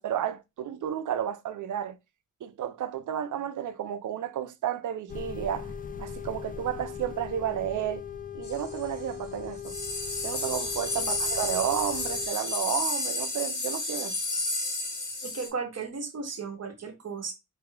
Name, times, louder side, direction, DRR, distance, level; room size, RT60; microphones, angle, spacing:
voice 1, 0.0-2.0 2.4-5.7 6.0-8.0 8.3-9.8 10.2-14.2, right 10 dB, 70° right, 0.5 m, -32 dB
sound 1, 5.1-12.3, left 8 dB, 25° left, 0.4 m, -39 dB
sound 2, 8.4-8.8 9.6-15.5, left 2 dB, 85° left, 1.7 m, -31 dB
voice 2, 15.2-17.3, right 5 dB, 50° right, 1.0 m, -35 dB
5.1 x 2.2 x 2.9 m
wide cardioid pair, 140°, 32 cm